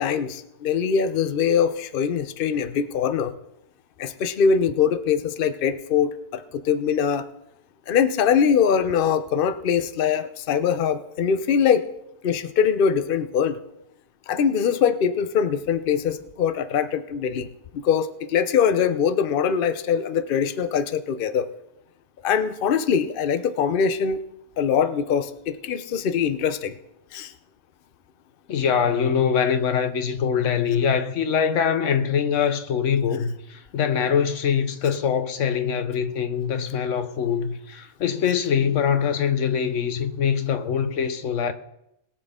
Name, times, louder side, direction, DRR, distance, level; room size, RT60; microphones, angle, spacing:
voice 1, 0.0-3.3 4.0-7.3 7.9-11.8 12.2-13.6 14.3-17.5 17.8-21.5 22.2-24.2 24.6-26.7 27.1-27.3, left 7 dB, 55° left, 0.8 m, -22 dB
voice 2, 28.5-41.5, left 7 dB, 85° left, 1.2 m, -23 dB
21.0 x 7.5 x 3.6 m
omnidirectional pair, 1.2 m